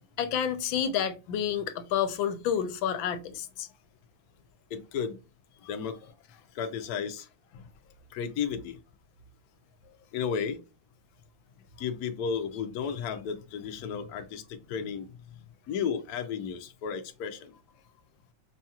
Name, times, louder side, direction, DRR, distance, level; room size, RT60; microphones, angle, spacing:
voice 1, 0.2-3.7, left 8 dB, 80° left, 1.4 m, -29 dB
voice 2, 4.7-5.2 5.7-6.0 6.5-7.3 8.1-8.8 10.1-10.6 11.8-15.4 15.7-17.5, left 7 dB, 65° left, 1.0 m, -33 dB
5.4 x 2.8 x 2.3 m
omnidirectional pair, 2.1 m